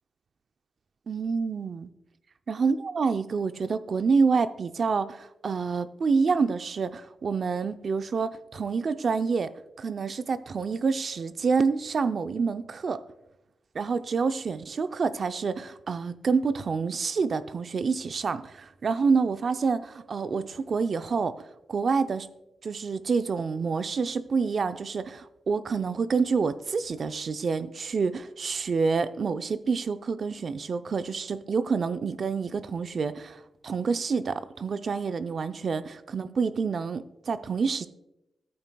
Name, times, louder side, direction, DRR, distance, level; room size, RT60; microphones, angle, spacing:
voice 1, 1.1-1.9 2.5-9.5 9.8-13.0 13.7-21.3 21.7-22.3 22.6-37.9, right 5 dB, 55° right, 0.5 m, -27 dB
14.5 x 8.7 x 2.3 m
cardioid pair, 85°, 0 cm